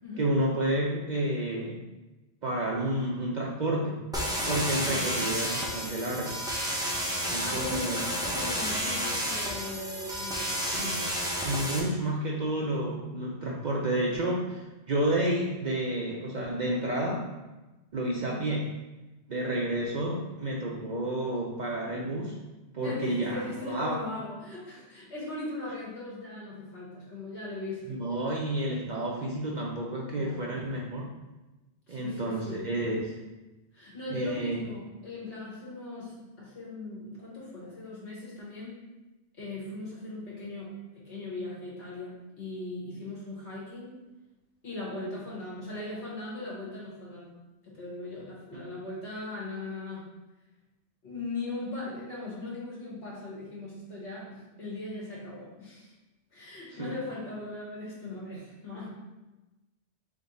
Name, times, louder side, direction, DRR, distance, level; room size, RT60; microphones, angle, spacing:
voice 1, 0.2-1.8 2.4-4.1 4.5-6.4 7.3-8.0 10.6-11.1 11.4-17.3 17.9-18.8 19.3-22.4 22.7-24.0 27.9-31.1 31.9-33.2 34.1-34.6 48.5-48.7 56.7-57.0, right 1 dB, 50° right, -2 dB, 0.6 m, -30 dB
sound 1, 4.1-11.8, equal, 5° right, 0.6 m, -31 dB
voice 2, 7.2-11.2 18.2-18.5 22.8-28.0 30.1-30.6 31.9-32.7 33.7-38.8 39.4-44.0 44.6-47.4 47.6-50.1 51.0-55.9 56.3-58.9, left 2 dB, 65° left, -6 dB, 1.8 m, -39 dB
3.7 x 3.5 x 4.0 m, 1.1 s
omnidirectional pair, 1.2 m